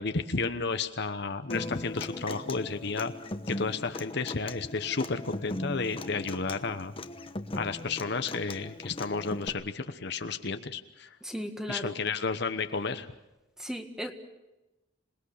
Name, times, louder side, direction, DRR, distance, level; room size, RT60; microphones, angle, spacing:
voice 1, 0.0-3.1 3.5-6.9 7.5-11.2 11.7-13.1, left 4 dB, 60° left, 9 dB, 1.0 m, -32 dB
Human voice / Acoustic guitar, 1.5-9.5, left 1 dB, 30° left, 1.1 m, -39 dB
voice 2, 11.2-12.0 13.6-14.1, equal, 5° right, 5 dB, 1.7 m, -36 dB
27.0 x 19.5 x 6.6 m, 0.96 s
head